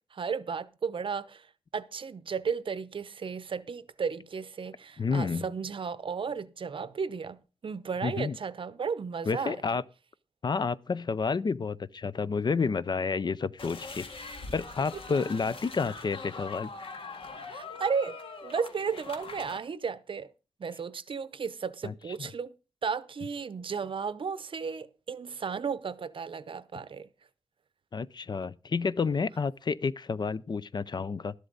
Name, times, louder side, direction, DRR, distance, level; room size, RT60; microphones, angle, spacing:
voice 1, 0.1-1.5 1.7-9.8 17.5-20.3 20.6-22.5 22.8-27.1, right 6 dB, 60° right, 0.8 m, -34 dB
voice 2, 5.0-5.4 8.0-8.4 9.3-9.8 10.4-16.7 21.8-22.3 27.9-31.3, left 5 dB, 50° left, 0.5 m, -30 dB
sound 1, 13.6-19.6, left 3 dB, 65° left, 2.0 m, -42 dB
13.0 x 11.5 x 4.0 m
wide cardioid pair, 120°, 10 cm